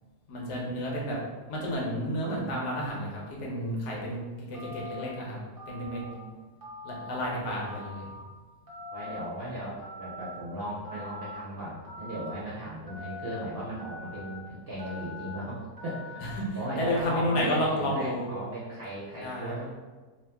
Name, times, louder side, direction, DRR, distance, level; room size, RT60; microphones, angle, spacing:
voice 1, 0.3-1.2 1.5-5.4 5.7-6.0 6.8-8.1 16.4-16.5 16.7-18.3 19.2-19.6, equal, 80° left, -3 dB, 1.4 m, -31 dB
Telephone, 4.5-5.0 5.6-6.1 6.6-7.2 7.6-8.2 8.7-9.2 9.8-10.4 10.8-11.4 11.8-12.3 12.9-13.4 13.8-14.4 14.8-15.3 15.8-16.4, left 2 dB, 20° right, 0.5 m, -43 dB
voice 2, 5.9-6.4 8.9-19.7, right 1 dB, 45° right, -7 dB, 0.9 m, -37 dB
2.9 x 2.8 x 3.4 m, 1.3 s
omnidirectional pair, 1.7 m